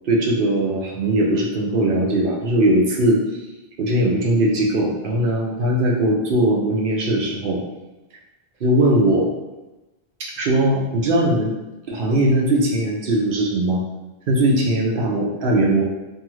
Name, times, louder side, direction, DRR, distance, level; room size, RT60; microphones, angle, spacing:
voice 1, 0.0-3.2 3.8-7.6 8.6-9.3 10.2-11.5 11.9-13.8 14.3-15.8, right 1 dB, 65° right, -2 dB, 0.8 m, -19 dB
2.7 x 2.4 x 3.0 m, 1.1 s
omnidirectional pair, 1.1 m